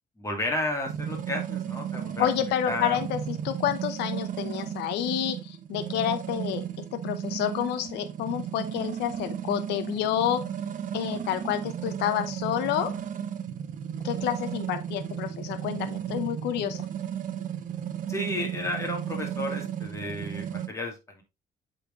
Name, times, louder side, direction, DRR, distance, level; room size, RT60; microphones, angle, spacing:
voice 1, 0.2-2.3 2.7-3.0 18.1-21.2, left 1 dB, 15° left, 1 dB, 2.6 m, -32 dB
sound 1, 0.8-20.7, right 9 dB, 50° right, 1.0 m, -34 dB
voice 2, 2.2-6.6 6.9-10.5 10.9-12.9 14.0-16.9, left 11 dB, 85° left, 9 dB, 0.9 m, -29 dB
8.2 x 4.4 x 3.7 m, 0.25 s
cardioid pair, 110°, 17 cm